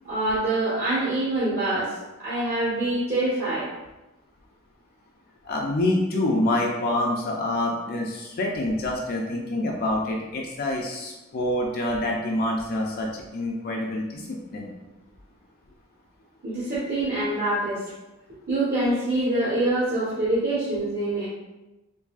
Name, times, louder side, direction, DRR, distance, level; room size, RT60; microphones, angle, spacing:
voice 1, 0.0-1.9 2.2-3.7 16.4-17.9 18.5-21.3, right 2 dB, 50° right, -11 dB, 1.1 m, -25 dB
voice 2, 5.4-14.7, left 1 dB, 45° left, -1 dB, 0.4 m, -26 dB
3.9 x 2.7 x 2.3 m, 1.0 s
head